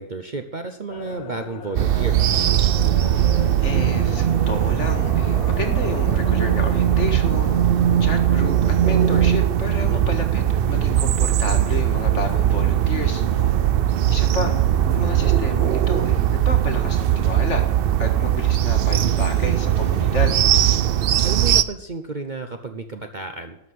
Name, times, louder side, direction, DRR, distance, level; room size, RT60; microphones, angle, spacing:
voice 1, 0.0-2.2 9.9-10.2 21.2-23.6, right 4 dB, 40° right, 6 dB, 0.8 m, -32 dB
sound 1, 0.9-15.7, left 7 dB, 75° left, 1.4 m, -40 dB
sound 2, 1.7-21.6, right 10 dB, 75° right, 0.5 m, -19 dB
voice 2, 3.6-7.6 8.0-13.4 14.1-14.5 14.9-17.7 18.0-20.4, left 3 dB, 50° left, 4 dB, 2.0 m, -31 dB
12.5 x 6.4 x 9.4 m, 0.78 s
omnidirectional pair, 1.6 m